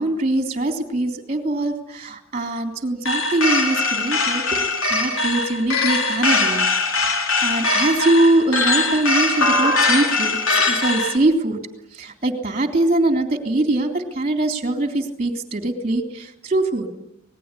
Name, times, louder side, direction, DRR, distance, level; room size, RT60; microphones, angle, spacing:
voice 1, 0.0-6.7 7.0-11.6 11.9-16.9, right 2 dB, 30° right, 5 dB, 3.4 m, -22 dB
sound 1, 3.1-11.2, left 3 dB, 70° left, 4.2 m, -21 dB
27.5 x 20.0 x 9.9 m, 0.82 s
head